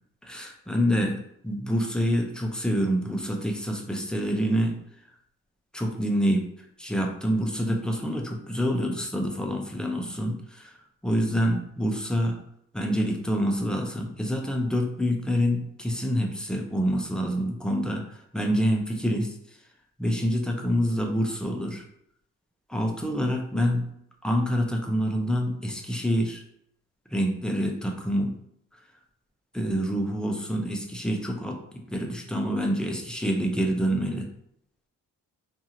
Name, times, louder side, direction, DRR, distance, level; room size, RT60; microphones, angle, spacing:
voice 1, 0.2-4.8 5.7-6.4 6.8-10.8 11.0-12.4 12.7-19.4 20.0-21.8 22.7-23.9 24.2-26.4 27.1-28.3 29.5-34.3, equal, 5° left, 2 dB, 0.5 m, -27 dB
2.7 x 2.5 x 2.8 m, 0.73 s
cardioid pair, 90°, 30 cm